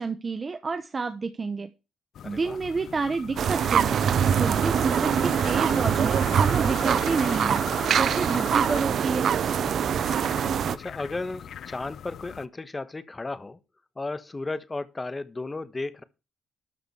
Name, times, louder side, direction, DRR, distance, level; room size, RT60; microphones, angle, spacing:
voice 1, 0.0-1.7 2.2-4.0 4.4-7.6 8.0-9.3, right 4 dB, 35° right, 1.0 m, -29 dB
sound 1, 2.2-12.5, left 9 dB, 70° left, 0.6 m, -39 dB
voice 2, 2.2-2.6 9.3-9.6 10.7-13.6 14.0-16.0, left 3 dB, 25° left, 1.2 m, -34 dB
sound 2, 3.4-10.8, right 8 dB, 65° right, 0.6 m, -24 dB
12.5 x 5.1 x 7.1 m
cardioid pair, 100°, 0 cm